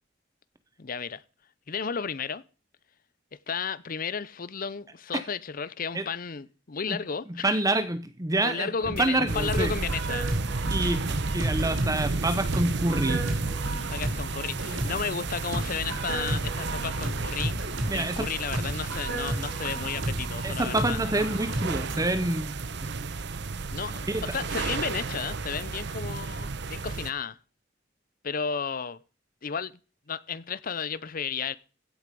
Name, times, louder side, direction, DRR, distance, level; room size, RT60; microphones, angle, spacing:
voice 1, 0.8-1.2 1.7-2.4 3.5-7.6 8.4-10.3 13.9-17.6 17.9-21.0 23.7-27.4 28.2-29.0 29.4-29.8 30.1-31.5, left 6 dB, 45° left, 0.6 m, -33 dB
voice 2, 7.4-8.7 9.0-9.7 10.7-11.1 11.3-13.3 14.9-15.0 17.9-18.3 20.4-22.5 24.1-24.2, right 2 dB, 20° right, 0.8 m, -27 dB
sound 1, 8.8-22.0, right 1 dB, 80° right, 3.6 m, -33 dB
sound 2, 9.3-27.1, right 3 dB, 60° right, 0.9 m, -32 dB
16.0 x 7.8 x 5.3 m
head